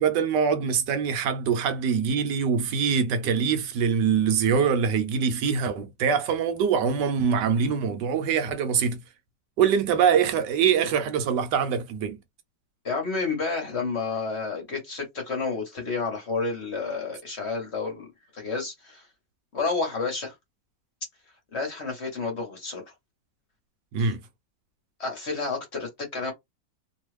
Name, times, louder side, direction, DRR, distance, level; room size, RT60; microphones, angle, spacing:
voice 1, 0.0-9.0 9.6-12.2 23.9-24.2, right 6 dB, 70° right, 1.3 m, -24 dB
voice 2, 12.8-18.1 18.3-19.1 19.5-20.3 21.5-22.8 24.0-24.1 25.0-26.3, left 4 dB, 45° left, 1.0 m, -30 dB
3.1 x 2.3 x 3.2 m
omnidirectional pair, 2.0 m